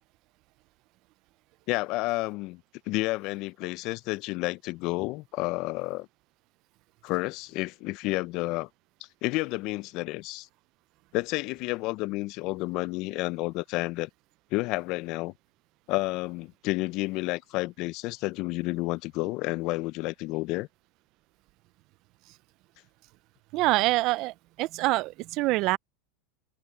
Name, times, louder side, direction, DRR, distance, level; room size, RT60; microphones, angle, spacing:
voice 1, 1.7-6.1 7.0-8.7 9.2-10.5 11.1-14.1 14.5-15.3 15.9-20.7, left 21 dB, 55° left, 0.6 m, -30 dB
voice 2, 23.5-25.8, right 20 dB, 50° right, 0.5 m, -25 dB
supercardioid pair, 120°, 0 cm